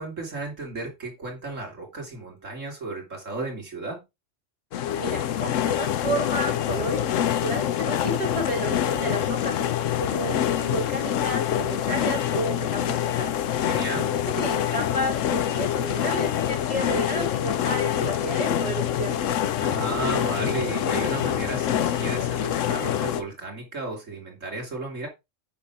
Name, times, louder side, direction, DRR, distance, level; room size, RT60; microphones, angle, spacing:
voice 1, 0.0-4.0 13.6-14.1 19.6-25.1, right 2 dB, 85° right, 3.5 m, -34 dB
sound 1, 4.7-23.2, left 10 dB, 85° left, 1.1 m, -25 dB
voice 2, 4.9-9.6 10.0-13.3 14.4-19.2, right 2 dB, 25° right, 4.4 m, -32 dB
8.6 x 5.6 x 4.8 m
omnidirectional pair, 1.3 m